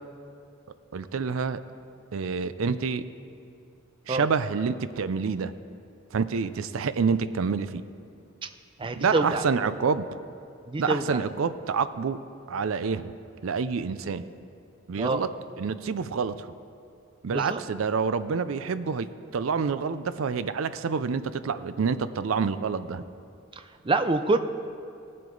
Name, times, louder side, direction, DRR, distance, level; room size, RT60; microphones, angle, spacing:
voice 1, 0.9-1.6 2.1-3.0 4.1-5.5 6.1-7.8 9.0-10.1 10.8-12.2 12.5-13.1 13.4-14.2 14.9-15.3 15.6-16.5 17.2-23.0, right 5 dB, 80° right, 13 dB, 0.5 m, -27 dB
voice 2, 8.8-9.4 10.7-11.2 15.0-15.2 17.3-17.6 23.9-24.4, right 3 dB, 25° right, 9 dB, 0.4 m, -26 dB
17.5 x 7.6 x 3.9 m, 2.5 s
head